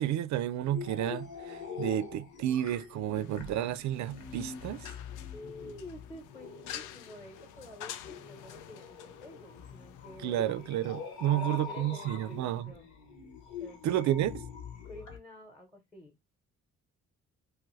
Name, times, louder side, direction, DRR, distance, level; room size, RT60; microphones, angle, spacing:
voice 1, 0.0-4.9 10.2-12.7 13.8-14.3, right 12 dB, 70° right, 0.5 m, -31 dB
sound 1, 0.6-15.2, left 5 dB, 70° left, 1.1 m, -44 dB
sound 2, 3.1-12.6, left 10 dB, 90° left, 0.5 m, -49 dB
voice 2, 5.3-10.5 11.2-12.9 13.6-13.9 14.8-16.1, left 1 dB, 5° left, 0.9 m, -49 dB
3.1 x 2.4 x 3.1 m
cardioid pair, 90°, 30 cm